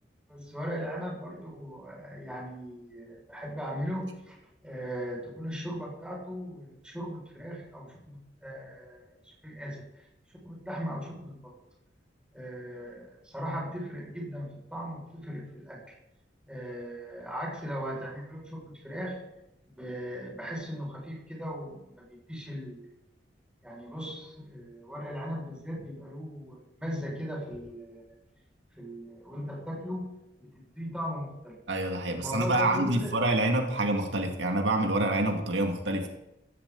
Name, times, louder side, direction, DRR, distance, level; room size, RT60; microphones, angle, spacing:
voice 1, 0.3-4.4 4.6-10.0 10.4-11.5 12.3-15.9 16.4-19.2 19.7-22.9 23.6-28.2 28.8-30.1 30.4-31.6 32.1-33.1, equal, 5° right, -3 dB, 5.8 m, -38 dB
voice 2, 31.7-36.1, right 2 dB, 85° right, 3 dB, 2.2 m, -27 dB
16.5 x 16.0 x 4.0 m, 0.87 s
head